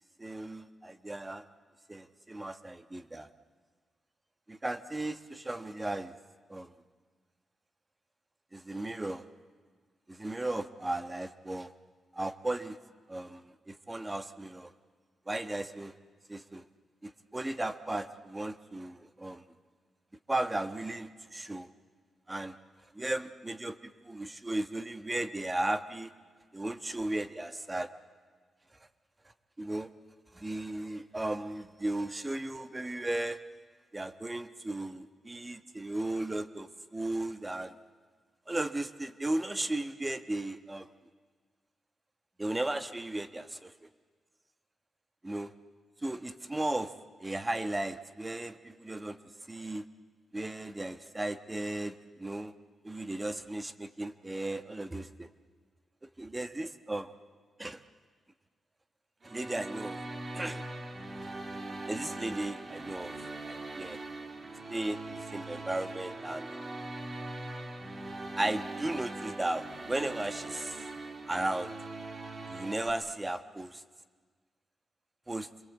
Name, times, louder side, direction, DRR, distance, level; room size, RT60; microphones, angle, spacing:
voice 1, 0.2-1.4 1.9-3.3 4.5-6.1 6.5-6.7 8.5-9.2 10.1-11.7 12.1-12.8 13.1-14.7 15.3-15.9 16.3-16.7 17.0-19.4 20.3-21.7 22.3-22.5 22.9-26.1 26.5-27.9 29.6-29.9 30.3-33.4 33.9-37.7 38.5-40.9 42.4-43.9 45.2-45.5 46.0-46.9 47.2-49.2 49.5-49.8 50.3-52.5 52.8-55.3 56.0-57.1 57.6-57.8 59.2-60.0 60.3-60.6 61.2-61.3 61.9-64.0 64.7-66.5 68.4-70.9 71.3-71.7 72.5-73.8 75.3-75.5, right 2 dB, 15° right, 10 dB, 1.2 m, -35 dB
sound 1, 59.2-72.9, right 2 dB, 35° right, 2.3 m, -41 dB
27.0 x 22.0 x 8.3 m, 1.5 s
cardioid pair, 95°, 0 cm